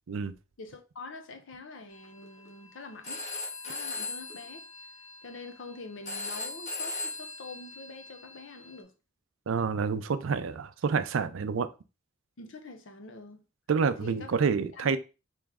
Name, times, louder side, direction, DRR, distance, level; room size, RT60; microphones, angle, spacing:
voice 1, 0.6-3.2 3.6-4.7 5.2-8.9 12.4-13.4 14.0-14.4 14.7-15.0, left 3 dB, 70° left, 0.7 m, -45 dB
Telephone, 1.9-8.8, left 3 dB, 35° left, 1.2 m, -40 dB
voice 2, 9.5-11.7 13.7-15.0, right 5 dB, 80° right, 0.4 m, -28 dB
3.5 x 3.0 x 3.5 m
head